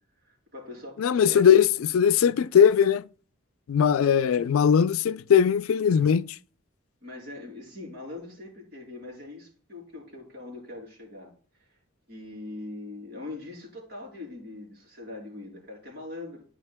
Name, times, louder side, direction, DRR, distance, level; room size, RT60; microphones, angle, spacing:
voice 1, 0.2-1.4 7.0-11.3 11.6-11.7 12.1-16.4, left 2 dB, 55° right, 4.1 m, -41 dB
voice 2, 1.0-1.7 1.9-3.0 3.7-6.3, left 8 dB, 80° left, 0.4 m, -20 dB
13.5 x 5.1 x 2.2 m
head